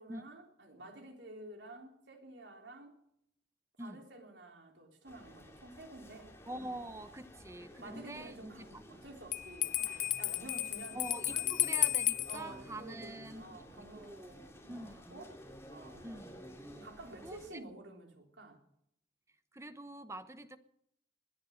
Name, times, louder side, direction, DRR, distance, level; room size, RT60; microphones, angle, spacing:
voice 1, 0.0-3.0 3.8-6.4 7.8-11.4 12.3-15.4 15.7-16.1 16.8-18.6, right 2 dB, 90° right, 3.6 m, -51 dB
voice 2, 3.8-4.1 6.5-8.8 10.9-14.4 14.7-15.2 16.0-16.4 17.0-17.6 19.5-20.6, right 1 dB, 15° right, 0.9 m, -46 dB
sound 1, 5.1-17.5, equal, 15° left, 2.6 m, -53 dB
Bell, 9.3-12.4, left 14 dB, 50° left, 0.6 m, -33 dB
20.5 x 10.0 x 6.5 m
head